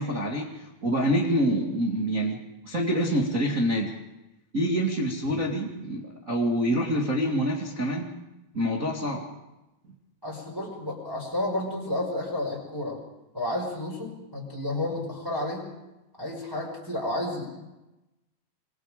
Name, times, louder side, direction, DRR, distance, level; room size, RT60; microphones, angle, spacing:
voice 1, 0.0-3.9 4.5-8.1 8.5-9.3, equal, 30° right, -2 dB, 1.7 m, -26 dB
voice 2, 10.2-13.0 13.3-15.7 16.2-17.5, left 1 dB, 5° right, -3 dB, 5.1 m, -31 dB
27.5 x 23.5 x 5.1 m, 0.98 s
omnidirectional pair, 4.9 m